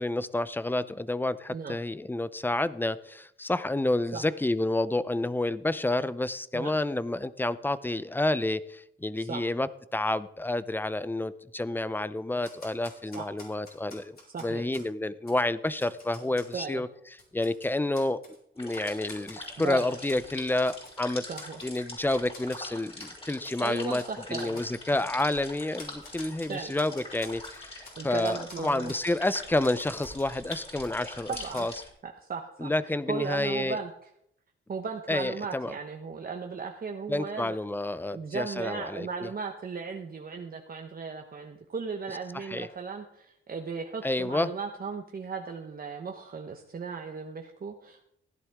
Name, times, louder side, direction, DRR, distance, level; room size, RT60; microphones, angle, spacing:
voice 1, 0.0-16.9 17.3-18.2 18.6-21.2 21.6-24.0 24.3-31.7 32.6-33.8 35.1-35.7 37.1-39.3 42.3-42.7 44.0-44.5, left 2 dB, 10° left, 16 dB, 0.6 m, -29 dB
Typewriter, 12.4-14.9 15.3-15.4 15.8-16.6 17.1-18.4 18.7-20.2 20.7-21.0 21.4-21.9 22.1-22.6 23.0-23.1 23.4-23.6 24.0-24.1 24.4-24.7 25.2-25.3 25.8-28.0 28.2-28.6 28.9-29.0 29.3-31.0 31.3-31.6, left 2 dB, 45° left, 4.9 m, -49 dB
voice 2, 14.3-14.7 16.5-16.8 19.6-19.9 21.2-21.6 23.6-24.6 26.5-26.7 28.0-28.9 31.3-31.7 32.0-32.7 33.1-33.9 34.7-37.6 38.1-48.1, right 5 dB, 45° right, 3 dB, 1.1 m, -36 dB
sound 1, 18.6-31.9, left 2 dB, 25° left, 5.2 m, -43 dB
16.0 x 11.0 x 3.6 m, 0.73 s
cardioid pair, 95°, 21 cm